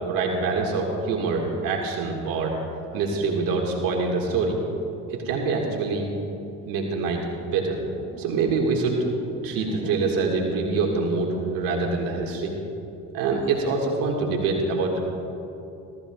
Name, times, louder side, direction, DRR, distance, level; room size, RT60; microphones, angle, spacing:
voice 1, 0.1-2.5 2.9-4.6 5.1-6.1 6.7-9.0 9.4-12.5 13.1-15.0, right 4 dB, 75° right, 0 dB, 1.7 m, -25 dB
19.5 x 14.0 x 2.3 m, 3.0 s
supercardioid pair, 80°, 34 cm